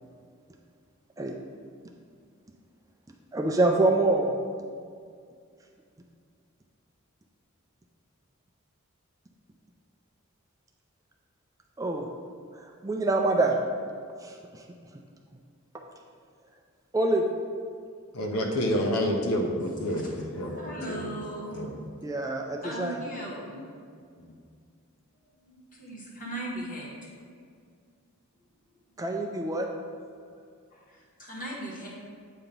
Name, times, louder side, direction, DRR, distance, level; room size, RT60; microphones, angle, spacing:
voice 1, 3.3-4.4 11.8-12.1 12.5-13.6 14.2-14.6 16.9-17.3 22.0-23.0 29.0-29.7, right 2 dB, 15° right, 1 dB, 0.4 m, -26 dB
voice 2, 18.1-21.0 21.5-21.7 24.2-24.3, equal, 90° left, 2 dB, 0.8 m, -29 dB
voice 3, 19.8-21.7 22.6-23.7 25.1-27.1 29.9-30.4 30.7-31.9, right 1 dB, 40° left, -5 dB, 1.6 m, -39 dB
8.3 x 2.9 x 5.2 m, 2.2 s
head